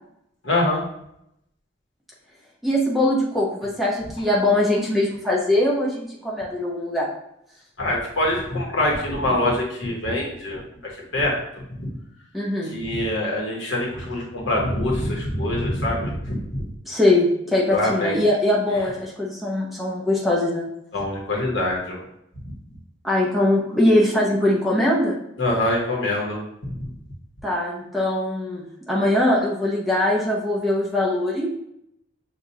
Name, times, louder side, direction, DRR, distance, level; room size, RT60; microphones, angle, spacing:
voice 1, 0.4-0.8 7.8-10.6 11.1-11.4 11.8-11.9 12.7-16.6 17.7-18.2 20.9-22.0 25.4-26.4 26.8-26.9, left 1 dB, 65° left, -2 dB, 1.2 m, -24 dB
voice 2, 2.6-7.1 12.3-12.7 16.8-20.7 23.0-25.2 27.4-31.5, left 1 dB, ahead, -5 dB, 0.7 m, -21 dB
6.5 x 2.4 x 2.7 m, 0.78 s
head